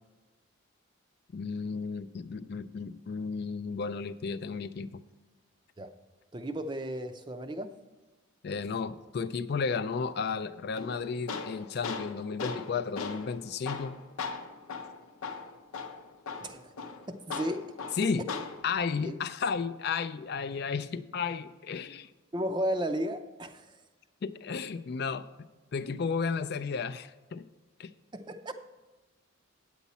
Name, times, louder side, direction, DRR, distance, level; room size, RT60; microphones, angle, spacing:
voice 1, 1.3-5.0 8.4-14.0 18.0-18.2 18.6-22.1 24.2-25.2 25.7-27.4 27.8-27.9, left 5 dB, 50° left, 12 dB, 0.3 m, -33 dB
voice 2, 6.3-7.7 16.4-16.7 17.1-17.7 18.0-18.1 19.0-19.1 22.3-23.7 28.1-28.6, equal, 20° right, 8 dB, 0.5 m, -34 dB
Tools, 10.8-18.8, left 4 dB, 90° left, 0.7 m, -39 dB
9.1 x 8.2 x 4.2 m, 1.2 s
head